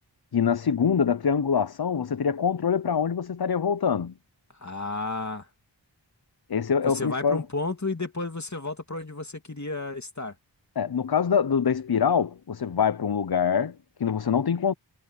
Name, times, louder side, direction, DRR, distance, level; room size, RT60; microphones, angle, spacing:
voice 1, 0.3-4.1 6.5-7.4 10.8-14.7, left 7 dB, 55° left, 0.8 m, -24 dB
voice 2, 4.6-5.5 6.8-10.3, left 3 dB, 40° left, 2.9 m, -32 dB
wide cardioid pair, 45°, 44 cm